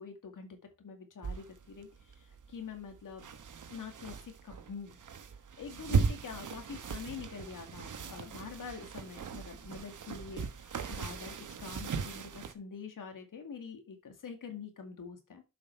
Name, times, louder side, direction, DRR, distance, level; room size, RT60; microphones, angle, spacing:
voice 1, 0.0-3.3 3.7-5.0 5.6-15.4, left 5 dB, 85° left, 5 dB, 2.2 m, -45 dB
sound 1, 1.2-12.5, right 5 dB, 75° right, 1.2 m, -38 dB
7.2 x 6.1 x 4.4 m, 0.27 s
cardioid pair, 75°, 31 cm